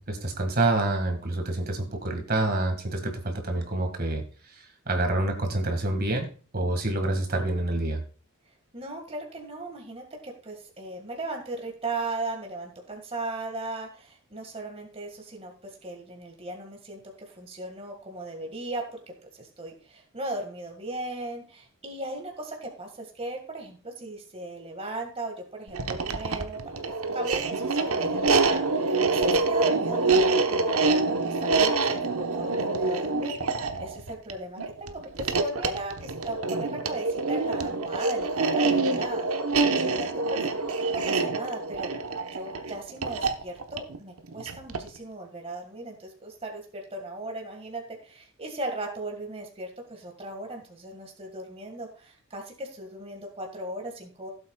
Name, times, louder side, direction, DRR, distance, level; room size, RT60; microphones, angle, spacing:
voice 1, 0.0-4.2 4.5-6.3 6.5-8.0, right 2 dB, 45° right, 4 dB, 1.9 m, -27 dB
voice 2, 8.7-26.6 27.1-41.9 42.3-54.3, right 2 dB, 25° right, 2 dB, 1.9 m, -37 dB
sound 1, 25.7-45.0, right 3 dB, 80° right, 1.1 m, -26 dB
16.0 x 8.1 x 2.4 m, 0.38 s
head